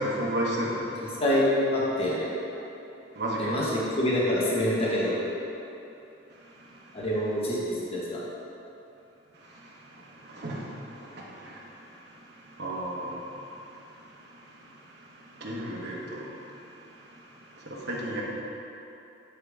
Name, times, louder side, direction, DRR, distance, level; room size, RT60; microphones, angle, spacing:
voice 1, 0.0-1.2 3.1-3.6 6.3-7.0 9.3-18.2, right 1 dB, 60° right, -4 dB, 1.2 m, -36 dB
voice 2, 1.2-2.3 3.4-5.1 6.9-8.2, left 1 dB, 30° left, -6 dB, 1.2 m, -26 dB
9.6 x 3.4 x 4.8 m, 2.9 s
head